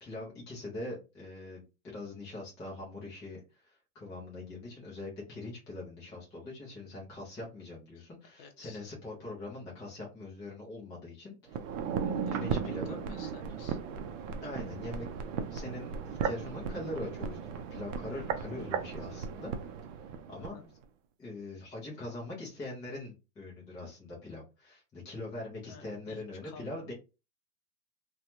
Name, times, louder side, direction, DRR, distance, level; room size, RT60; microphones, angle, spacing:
voice 1, 0.0-11.6 12.1-13.0 14.4-15.1 15.5-19.5 20.3-20.6 21.2-26.9, left 2 dB, 10° left, -5 dB, 0.3 m, -42 dB
voice 2, 8.4-8.8 12.1-13.8 20.5-20.7 25.7-26.9, left 5 dB, 40° left, 6 dB, 0.6 m, -52 dB
sound 1, 11.5-20.6 20.8-20.9, right 6 dB, 55° right, 0.6 m, -36 dB
2.7 x 2.3 x 2.5 m, 0.29 s
hypercardioid pair, 115°, 47 cm